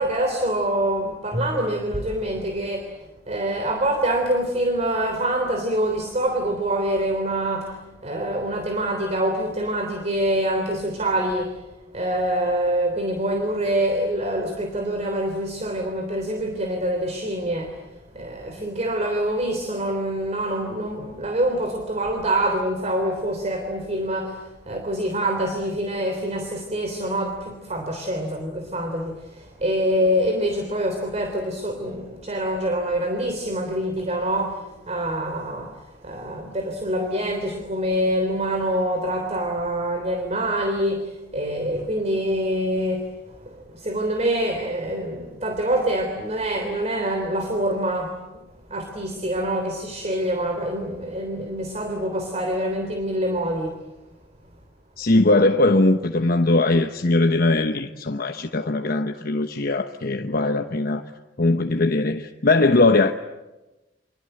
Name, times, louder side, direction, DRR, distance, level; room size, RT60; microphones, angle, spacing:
voice 1, 0.0-2.9 3.3-11.6 11.9-17.8 18.1-35.8 36.0-48.4 48.7-53.7, right 1 dB, 40° right, 3.3 m, -25 dB
voice 2, 55.0-61.0 61.4-63.1, left 2 dB, 55° left, 1.1 m, -20 dB
29.5 x 25.5 x 7.8 m
head